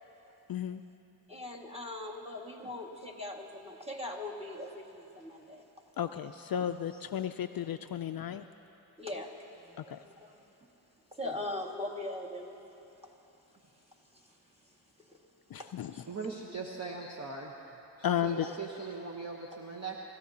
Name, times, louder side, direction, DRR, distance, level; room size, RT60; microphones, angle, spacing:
voice 1, 0.5-0.8 6.0-8.4 9.9-10.0 15.5-15.9 18.0-18.5, left 10 dB, 50° left, 9 dB, 0.4 m, -33 dB
voice 2, 1.3-5.6 6.5-6.7 9.0-9.3 9.6-10.3 11.2-12.6 15.6-16.1 18.4-18.6, left 1 dB, 15° right, -1 dB, 1.9 m, -40 dB
voice 3, 16.1-17.5 18.0-20.0, right 4 dB, 35° right, -1 dB, 1.1 m, -40 dB
27.5 x 14.0 x 2.8 m, 3.0 s
cardioid pair, 75°, 46 cm